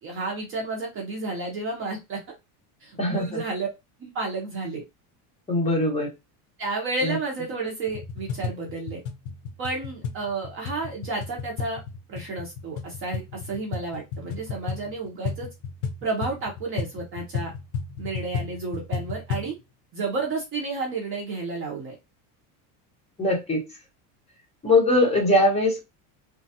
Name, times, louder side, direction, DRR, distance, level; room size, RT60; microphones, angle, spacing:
voice 1, 0.0-2.2 2.8-3.7 4.0-4.8 6.6-9.0 9.6-11.8 12.1-15.5 16.0-17.5 18.0-19.5 19.9-22.0, right 3 dB, 30° right, 0 dB, 0.7 m, -31 dB
voice 2, 3.0-3.4 5.5-6.1 7.0-7.2 23.2-23.6 24.6-25.8, left 2 dB, 15° left, -2 dB, 1.0 m, -21 dB
sound 1, 7.9-19.5, left 5 dB, 50° left, 0.7 m, -34 dB
3.1 x 2.3 x 2.7 m, 0.23 s
cardioid pair, 165°, 42 cm